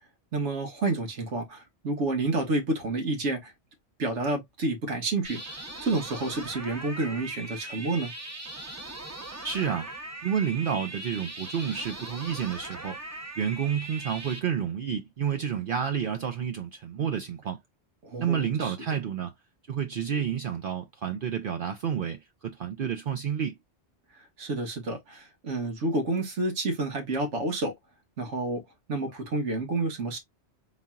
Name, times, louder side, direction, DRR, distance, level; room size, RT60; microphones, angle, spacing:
voice 1, 0.3-3.5 4.0-5.4 5.8-8.1 18.0-18.7 24.4-27.7 28.2-28.6 28.9-30.2, right 2 dB, 90° right, 1.6 m, -29 dB
sound 1, 5.2-14.4, right 2 dB, 15° right, 0.7 m, -40 dB
voice 2, 9.4-9.9 10.2-13.0 13.4-17.6 18.2-19.3 19.7-23.6, right 8 dB, 60° right, 0.7 m, -30 dB
4.2 x 3.9 x 2.3 m
omnidirectional pair, 1.2 m